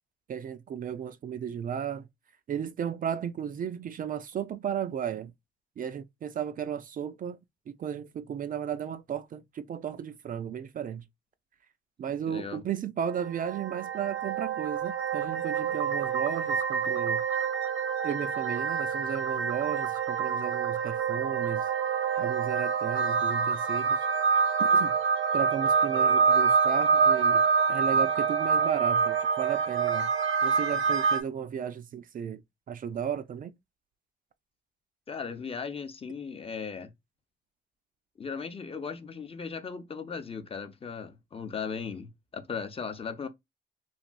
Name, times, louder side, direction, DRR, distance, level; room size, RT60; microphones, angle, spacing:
voice 1, 0.3-2.1 2.5-5.3 5.8-7.4 7.7-11.0 12.0-17.2 18.0-21.7 22.2-24.1 24.6-24.9 25.3-30.1 30.4-32.4 32.7-33.5, right 8 dB, 45° right, 0.4 m, -34 dB
voice 2, 12.1-12.6 35.1-36.9 38.2-43.3, left 5 dB, 30° left, 0.6 m, -37 dB
sound 1, 13.1-31.2, right 6 dB, 80° right, 0.9 m, -26 dB
3.2 x 2.3 x 2.4 m
cardioid pair, 90°, 20 cm